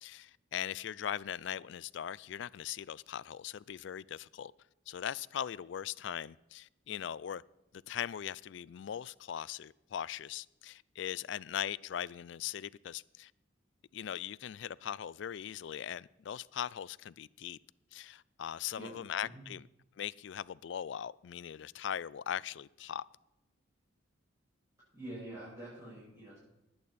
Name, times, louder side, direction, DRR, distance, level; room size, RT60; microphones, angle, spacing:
voice 1, 0.0-4.5 4.9-7.4 7.9-13.3 13.9-17.6 17.9-19.7 20.0-23.0, left 9 dB, 65° left, 0.3 m, -40 dB
voice 2, 24.9-26.4, right 1 dB, 15° right, 6.1 m, -46 dB
19.5 x 8.7 x 4.2 m
head